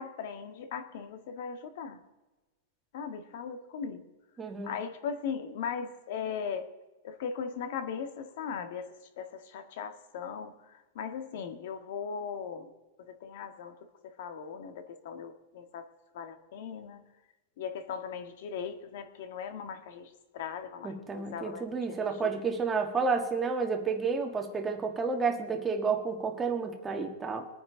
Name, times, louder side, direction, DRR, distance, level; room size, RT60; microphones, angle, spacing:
voice 1, 0.0-2.0 2.9-4.0 4.6-6.7 7.0-8.9 9.2-12.7 13.2-13.7 14.2-15.9 16.1-17.0 17.6-22.4, left 6 dB, 55° left, 8 dB, 1.7 m, -38 dB
voice 2, 4.4-4.8 20.8-27.5, right 5 dB, 10° right, 4 dB, 1.5 m, -31 dB
23.0 x 9.6 x 3.9 m, 1.1 s
supercardioid pair, 165°, 0 cm